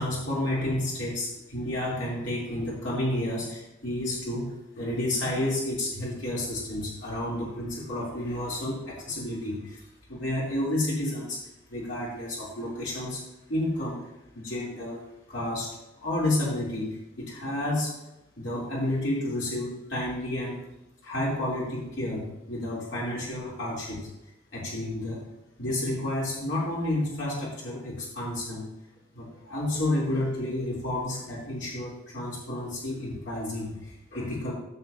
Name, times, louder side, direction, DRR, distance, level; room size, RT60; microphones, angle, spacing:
voice 1, 0.0-9.8 10.1-11.4 11.7-13.2 13.5-14.0 14.3-15.0 15.3-15.7 16.0-16.9 17.2-17.9 18.4-20.6 21.0-24.0 24.5-25.2 25.6-28.6 29.1-34.5, left 1 dB, 70° left, -7 dB, 3.1 m, -30 dB
16.0 x 7.3 x 2.7 m, 0.91 s
head